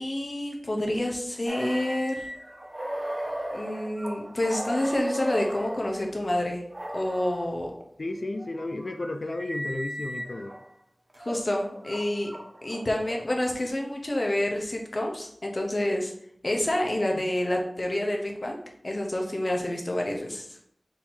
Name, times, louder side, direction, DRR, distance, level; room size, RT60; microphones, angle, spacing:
voice 1, 0.0-2.3 3.5-6.6 6.9-7.7 11.2-12.3 12.6-16.1 16.4-18.6 18.8-20.5, left 1 dB, 50° left, 1 dB, 0.7 m, -28 dB
sound 1, 1.5-6.0 6.7-7.5 8.2-10.6 11.1-13.5, equal, 35° right, 0.8 m, -36 dB
voice 2, 8.0-10.5, left 2 dB, 75° left, 6 dB, 0.4 m, -33 dB
3.9 x 2.8 x 4.2 m, 0.66 s
wide cardioid pair, 65°, 0 cm